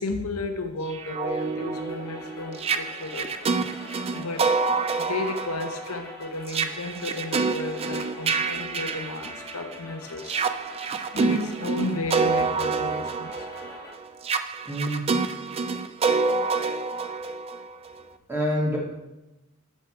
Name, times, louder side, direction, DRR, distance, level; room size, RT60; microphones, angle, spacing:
voice 1, 0.0-3.3 3.9-4.5 5.0-10.4 11.1-13.5, left 3 dB, 75° left, 5 dB, 0.9 m, -33 dB
sound 1, 0.9-9.7 10.2-18.0, right 4 dB, 25° right, 0.4 m, -27 dB
sound 2, 1.1-13.9, left 2 dB, 15° left, 1.8 m, -45 dB
voice 2, 14.6-15.1 18.3-18.8, equal, 10° right, -5 dB, 2.3 m, -26 dB
6.7 x 6.6 x 4.6 m, 0.94 s
head